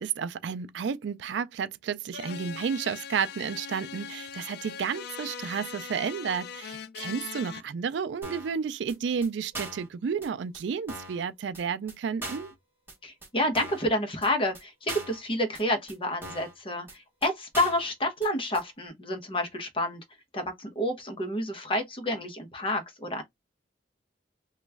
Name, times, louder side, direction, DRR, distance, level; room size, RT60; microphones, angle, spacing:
voice 1, 0.0-12.5, right 6 dB, 70° right, 0.4 m, -32 dB
sound 1, 2.1-7.6, left 7 dB, 60° left, 0.4 m, -40 dB
sound 2, 8.2-8.5 8.9-9.0 9.2-9.3 9.5-9.9 10.2-10.3 10.5-10.6 10.9-11.2 11.5-11.6 11.9-12.0 12.2-12.5 12.9-13.0 13.2-13.3 13.5-13.9 14.2-14.3 14.5-14.6 14.9-15.2 15.5-15.6 15.9-16.0 16.2-16.5 16.9-17.0 17.2-17.3 17.5-17.9 18.2-18.3 18.5-18.6, right 2 dB, 10° right, 1.3 m, -40 dB
voice 2, 13.0-20.0 20.3-23.2, left 1 dB, 30° left, 0.9 m, -29 dB
3.0 x 2.3 x 3.3 m
head